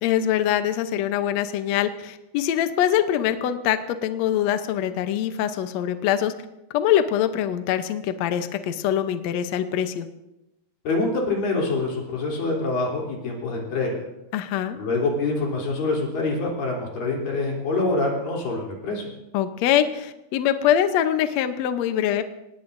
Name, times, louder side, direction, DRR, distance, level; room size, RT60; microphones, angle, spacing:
voice 1, 0.0-6.3 6.7-10.1 14.3-14.8 19.3-22.2, left 10 dB, 80° left, 8 dB, 1.5 m, -23 dB
voice 2, 10.9-14.0 14.8-19.1, left 3 dB, 65° left, -2 dB, 5.2 m, -25 dB
26.0 x 19.5 x 2.7 m, 0.93 s
omnidirectional pair, 4.3 m